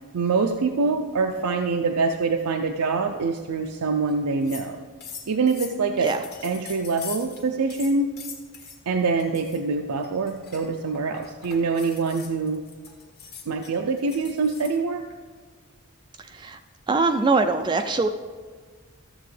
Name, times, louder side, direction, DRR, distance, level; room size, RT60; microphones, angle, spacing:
voice 1, 0.1-4.9 5.3-6.1 6.4-8.1 8.9-12.6 13.5-15.1, right 4 dB, 85° right, 4 dB, 0.5 m, -25 dB
sound 1, 4.1-4.2 4.4-4.7 5.0-7.4 7.7-8.8 9.2-9.6 10.0-14.8, left 6 dB, 45° left, 1.6 m, -42 dB
voice 2, 16.9-18.1, right 3 dB, 20° right, 7 dB, 0.3 m, -22 dB
13.5 x 7.5 x 3.3 m, 1.5 s
head